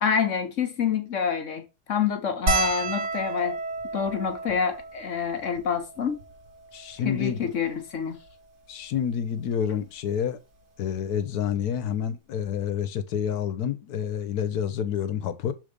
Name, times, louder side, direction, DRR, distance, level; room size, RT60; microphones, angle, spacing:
voice 1, 0.0-3.6 3.9-6.2 7.0-8.2, left 7 dB, 55° left, 1.3 m, -27 dB
sound 1, 2.5-7.1 7.8-7.9 8.1-8.3 9.6-9.8 11.2-11.3 11.6-11.8, right 2 dB, 50° right, 1.7 m, -31 dB
voice 2, 6.7-7.4 8.7-10.4 10.8-15.5, left 8 dB, 85° left, 1.4 m, -28 dB
6.6 x 3.6 x 5.1 m
omnidirectional pair, 1.6 m